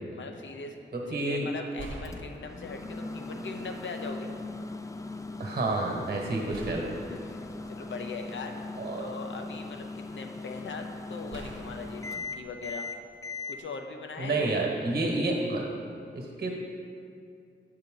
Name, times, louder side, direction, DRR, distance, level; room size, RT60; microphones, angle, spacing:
voice 1, 0.1-0.8 1.1-4.3 7.1-12.9 13.5-14.7, left 4 dB, 70° left, 4 dB, 0.7 m, -40 dB
voice 2, 0.9-1.5 5.4-6.9 8.8-9.1 14.2-15.7 16.1-16.5, right 2 dB, 50° right, 0 dB, 1.3 m, -29 dB
sound 1, 1.0-1.2 1.8-3.1 4.0-4.1 6.5-8.7 9.2-10.1 11.3-13.4, right 1 dB, 80° right, 0.8 m, -46 dB
Microwave oven, 2.0-13.6, left 3 dB, 15° left, 0.4 m, -40 dB
7.9 x 5.6 x 3.8 m, 2.4 s
cardioid pair, 65°, 20 cm